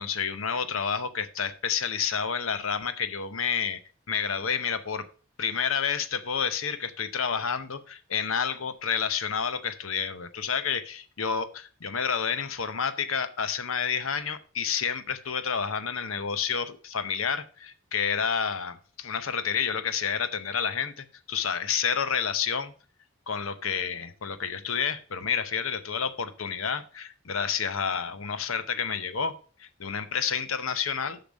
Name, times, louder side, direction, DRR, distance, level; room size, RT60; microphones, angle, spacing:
voice 1, 0.0-3.8 4.1-5.1 5.4-22.7 23.3-31.2, left 6 dB, 80° left, 12 dB, 0.9 m, -29 dB
7.0 x 5.8 x 6.3 m, 0.39 s
head